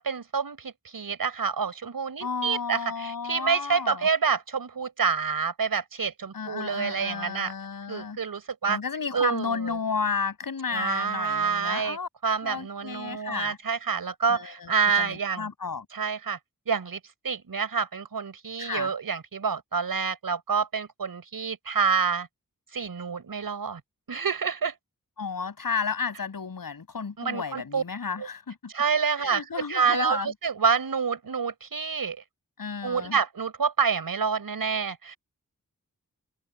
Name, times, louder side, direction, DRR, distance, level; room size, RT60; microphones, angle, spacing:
voice 1, 0.0-7.5 7.9-8.8 9.1-9.6 10.7-12.0 12.2-15.5 15.9-16.4 16.7-22.3 22.7-23.8 24.1-24.7 27.2-27.8 28.2-28.3 28.7-32.2 32.8-35.2, right 5 dB, 85° right, 6.2 m, -27 dB
voice 2, 2.2-4.1 6.3-8.2 8.7-12.1 12.4-13.6 14.3-14.7 15.0-15.9 18.6-18.9 25.2-28.7 29.2-30.3 32.6-33.2, left 5 dB, 80° left, 7.2 m, -32 dB
open air
wide cardioid pair, 80°, 34 cm